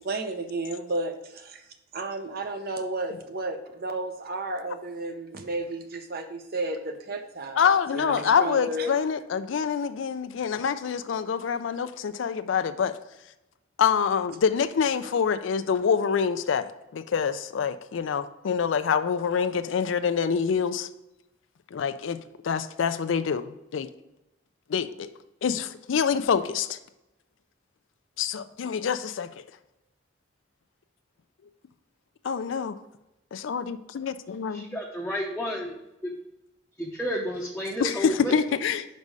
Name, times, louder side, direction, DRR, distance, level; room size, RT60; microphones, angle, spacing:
voice 1, 0.0-1.6 1.9-9.0, right 2 dB, 50° right, 7 dB, 0.7 m, -32 dB
voice 2, 7.6-12.9 13.8-20.9 21.7-23.9 24.7-25.1 25.4-26.8 28.2-29.3 32.2-32.8 33.3-34.7 37.8-38.9, left 6 dB, 70° left, 12 dB, 0.4 m, -26 dB
voice 3, 34.5-35.7 36.0-36.1 36.8-38.3, equal, 5° left, -3 dB, 0.7 m, -31 dB
5.3 x 5.3 x 4.7 m, 0.93 s
head